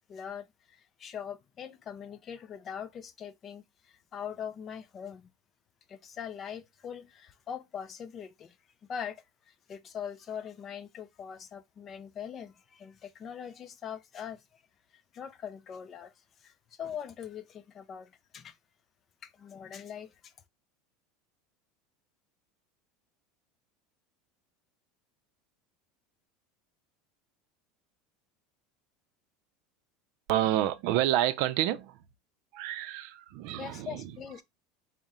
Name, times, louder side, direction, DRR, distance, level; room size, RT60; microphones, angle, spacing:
voice 1, 0.1-5.3 5.9-8.6 8.9-14.6 14.9-16.1 16.4-16.5 16.8-18.6 19.2-20.3 33.6-34.4, left 8 dB, 30° left, 0.4 m, -42 dB
voice 2, 30.3-32.0 32.5-34.1, right 13 dB, 60° right, 0.5 m, -29 dB
4.1 x 2.1 x 3.6 m
supercardioid pair, 155°, 0 cm